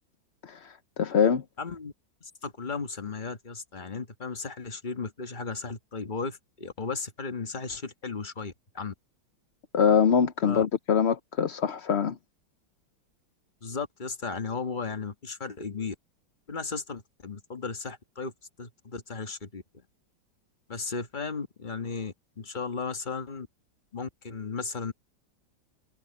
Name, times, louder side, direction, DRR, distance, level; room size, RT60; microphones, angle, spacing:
voice 1, 0.4-1.4 9.7-12.2, left 7 dB, 55° left, 0.7 m, -24 dB
voice 2, 1.6-1.9 2.2-8.9 10.4-10.6 13.6-15.9 16.5-18.3 18.6-19.6 20.7-23.5 23.9-24.9, left 4 dB, 25° left, 1.4 m, -35 dB
omnidirectional pair, 2.1 m